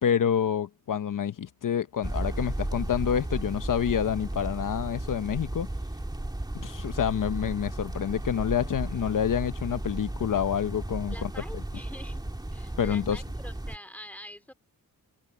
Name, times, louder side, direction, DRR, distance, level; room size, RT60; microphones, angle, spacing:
voice 1, 0.0-5.7 6.5-11.3 12.8-13.2, left 8 dB, 65° left, 0.9 m, -28 dB
sound 1, 2.0-13.8, right 1 dB, 10° right, 2.6 m, -34 dB
voice 2, 11.1-12.2 12.5-14.5, left 1 dB, 5° left, 2.6 m, -45 dB
wide cardioid pair, 110°, 35 cm